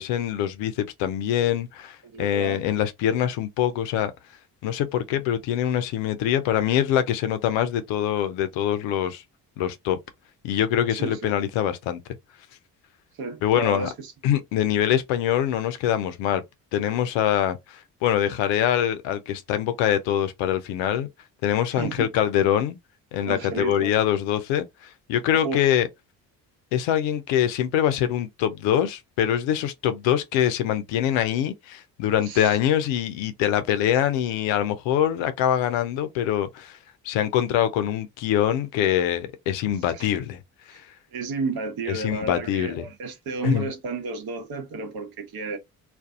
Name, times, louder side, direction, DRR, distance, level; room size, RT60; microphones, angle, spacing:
voice 1, 0.0-4.1 4.6-9.2 9.6-10.0 10.4-12.0 13.4-13.9 14.2-16.4 16.7-21.1 21.4-22.8 23.1-25.9 26.7-36.8 37.0-40.4 40.7-40.8 41.9-42.9 43.4-43.7, left 10 dB, 65° left, 0.6 m, -24 dB
voice 2, 2.0-2.6 10.9-11.3 13.2-14.1 21.7-22.1 23.3-23.9 25.4-25.6 32.2-32.6 39.9-40.1 40.7-40.8 41.1-45.6, right 4 dB, 45° right, 1.0 m, -32 dB
2.5 x 2.2 x 2.4 m
hypercardioid pair, 45°, 48 cm